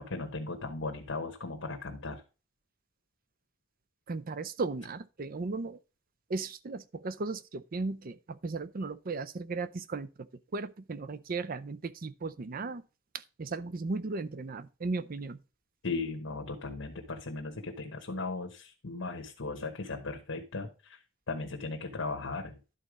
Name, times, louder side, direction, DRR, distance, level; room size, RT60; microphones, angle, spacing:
voice 1, 0.0-2.2 15.8-21.0 21.3-22.6, left 3 dB, 85° left, 1.1 m, -37 dB
voice 2, 4.1-5.8 6.3-10.3 10.5-12.8 13.1-15.4, right 3 dB, 45° right, 0.5 m, -36 dB
11.5 x 4.1 x 4.9 m
head